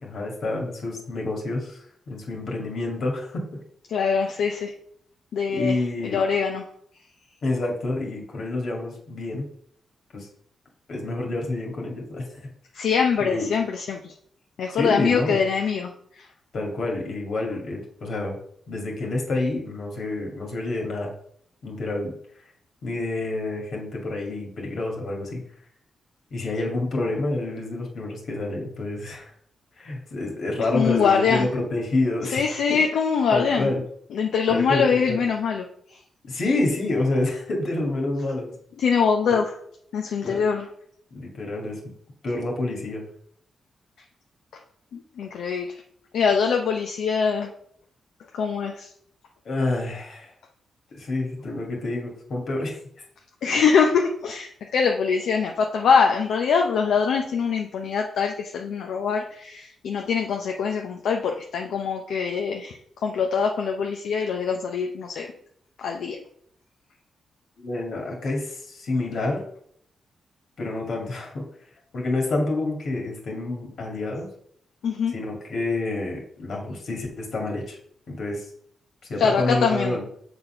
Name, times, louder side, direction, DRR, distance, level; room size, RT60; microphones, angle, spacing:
voice 1, 0.0-3.4 5.5-6.2 7.4-9.5 10.1-10.3 10.9-12.2 13.2-13.4 14.7-15.4 16.5-18.4 18.7-21.1 21.6-22.1 22.8-25.4 26.3-29.3 29.8-32.8 33.3-33.8 34.5-35.2 36.3-38.5 39.3-39.4 40.2-40.5 41.1-41.8 42.2-43.0 49.4-50.3 51.0-52.8 67.6-69.4 70.6-71.4 71.9-74.3 75.1-77.8 78.1-78.5 79.1-80.0, left 2 dB, 65° left, 0 dB, 2.2 m, -28 dB
voice 2, 3.9-4.7 5.3-5.8 6.0-6.6 12.7-14.1 14.6-16.3 30.7-31.5 32.3-33.7 34.1-35.6 35.9-36.0 38.8-39.6 39.9-40.7 44.9-45.7 46.1-47.5 48.3-48.9 53.4-62.8 63.0-65.3 65.8-66.2 74.8-75.1 79.2-80.0, left 6 dB, 85° left, 2 dB, 0.7 m, -23 dB
6.9 x 4.2 x 5.7 m, 0.66 s
cardioid pair, 80°, 0 cm